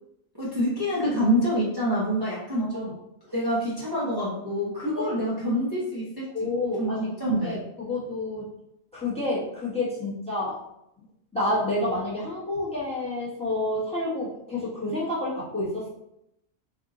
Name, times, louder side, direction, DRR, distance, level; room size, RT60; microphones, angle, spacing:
voice 1, 0.4-3.0 3.3-6.3 6.8-7.6, equal, 20° right, -9 dB, 0.8 m, -26 dB
voice 2, 2.6-2.9 4.8-5.1 6.3-8.5 8.9-10.6 11.3-15.9, left 2 dB, 5° left, -8 dB, 1.1 m, -29 dB
3.9 x 2.7 x 3.7 m, 0.83 s
omnidirectional pair, 1.4 m